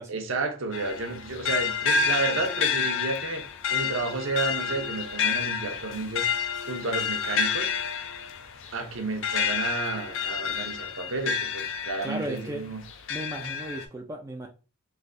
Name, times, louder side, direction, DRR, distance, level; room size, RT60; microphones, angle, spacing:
voice 1, 0.1-3.4 3.7-6.3 6.7-7.7 8.7-12.8, right 3 dB, 60° right, 0.7 m, -31 dB
sound 1, 0.7-12.4 12.9-13.8, left 6 dB, 60° left, 0.4 m, -29 dB
voice 2, 12.0-12.6 13.1-14.5, right 1 dB, 15° right, 0.3 m, -35 dB
3.3 x 2.7 x 2.5 m
head